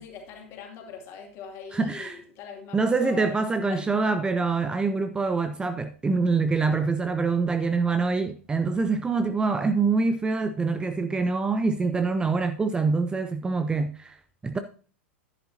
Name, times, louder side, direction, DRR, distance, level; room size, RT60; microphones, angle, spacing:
voice 1, 0.0-3.4 3.7-3.9 11.8-12.0, left 5 dB, 40° left, 2.5 m, -42 dB
voice 2, 1.7-2.1 2.7-14.2 14.4-14.6, right 4 dB, 10° right, 0.5 m, -25 dB
10.5 x 10.5 x 2.8 m
figure-of-eight pair, 95°, 7 cm